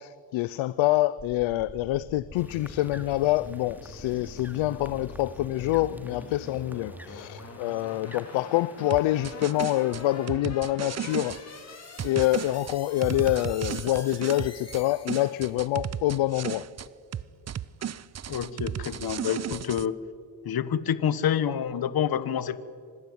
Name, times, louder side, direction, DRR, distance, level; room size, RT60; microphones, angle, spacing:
voice 1, 0.0-11.4 12.0-16.6, left 15 dB, 90° left, 0.7 m, -26 dB
sound 1, 1.2-15.6, left 3 dB, 35° left, 4.3 m, -44 dB
sound 2, 2.3-10.3, equal, 5° right, 2.6 m, -52 dB
sound 3, 8.9-11.4 12.0-14.8 15.1-16.9 17.1-19.9, right 9 dB, 35° right, 0.7 m, -34 dB
voice 2, 18.3-20.0 20.4-22.6, left 9 dB, 55° left, 1.2 m, -28 dB
25.5 x 19.5 x 9.4 m
cardioid pair, 95°, 45 cm